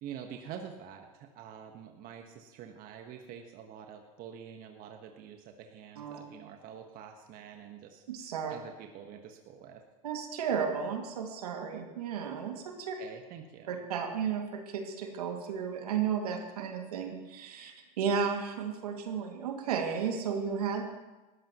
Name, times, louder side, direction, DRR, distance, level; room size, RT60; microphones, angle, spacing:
voice 1, 0.0-8.0 8.5-9.8 13.0-13.9, right 8 dB, 45° right, 4 dB, 1.4 m, -46 dB
voice 2, 8.1-8.5 10.0-13.0 13.7-20.9, right 7 dB, 80° right, 2 dB, 2.3 m, -33 dB
19.5 x 13.0 x 3.1 m, 1.1 s
hypercardioid pair, 100°, 19 cm